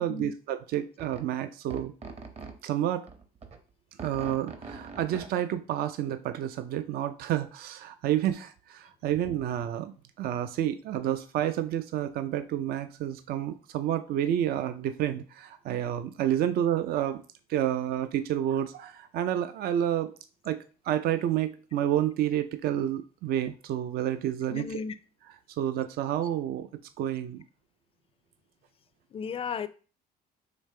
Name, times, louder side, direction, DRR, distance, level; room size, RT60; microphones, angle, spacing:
voice 1, 0.0-1.9 2.6-3.1 4.0-17.2 17.5-20.2 20.4-20.6 20.9-24.8 25.6-26.7 27.0-27.4, right 11 dB, 65° right, 0.4 m, -29 dB
sound 1, 1.0-1.2 1.7-2.5 3.1-3.6 4.0-5.4, right 4 dB, 40° right, 0.8 m, -42 dB
voice 2, 24.5-24.9 29.1-29.7, left 6 dB, 35° left, 0.4 m, -34 dB
5.1 x 3.2 x 3.2 m
cardioid pair, 110°, 17 cm